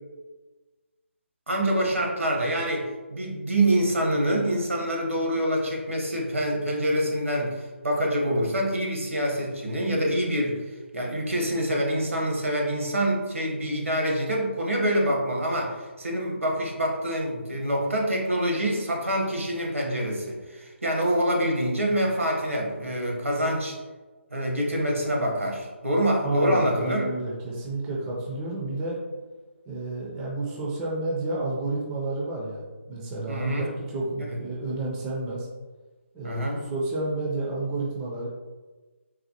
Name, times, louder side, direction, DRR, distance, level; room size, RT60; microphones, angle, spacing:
voice 1, 1.5-10.6 10.9-23.8 24.3-27.1 33.3-33.7 36.2-36.6, equal, 85° right, -1 dB, 0.9 m, -26 dB
voice 2, 26.2-29.0 29.7-35.5 36.1-36.4 36.7-38.3, right 2 dB, 10° right, -4 dB, 0.4 m, -30 dB
4.1 x 2.2 x 2.8 m, 1.3 s
figure-of-eight pair, 150°, 7 cm